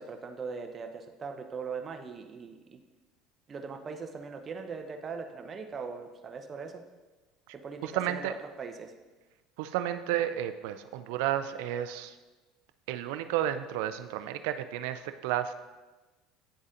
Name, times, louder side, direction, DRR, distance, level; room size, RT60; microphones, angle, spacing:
voice 1, 0.0-2.8 3.5-6.8 7.6-8.9, right 5 dB, 35° right, 5 dB, 0.7 m, -40 dB
voice 2, 7.8-8.3 9.6-12.1 12.9-15.5, right 11 dB, 75° right, 10 dB, 0.3 m, -32 dB
9.8 x 4.0 x 2.5 m, 1.2 s
supercardioid pair, 90°, 0 cm